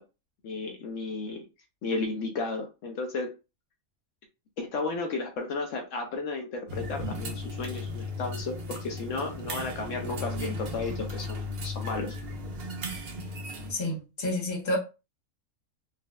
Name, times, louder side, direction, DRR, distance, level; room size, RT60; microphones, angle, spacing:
voice 1, 0.4-1.4 1.8-3.3 4.6-12.2, left 3 dB, 70° left, 0.9 m, -33 dB
sound 1, 6.7-13.7, left 2 dB, 55° right, 0.8 m, -36 dB
voice 2, 13.7-14.8, left 1 dB, 25° left, 0.9 m, -29 dB
4.2 x 2.1 x 2.2 m
omnidirectional pair, 1.4 m